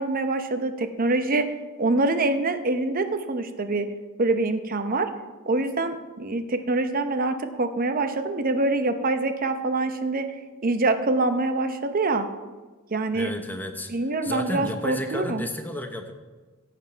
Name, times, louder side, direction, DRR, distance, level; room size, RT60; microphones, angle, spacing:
voice 1, 0.0-1.5 1.8-3.9 4.2-5.1 5.5-10.3 10.6-12.3 12.9-13.3 13.9-15.5, right 2 dB, 40° right, 9 dB, 0.8 m, -25 dB
voice 2, 13.1-13.9 14.2-16.1, left 1 dB, 10° left, 5 dB, 0.8 m, -32 dB
14.5 x 8.6 x 4.5 m, 1.3 s
head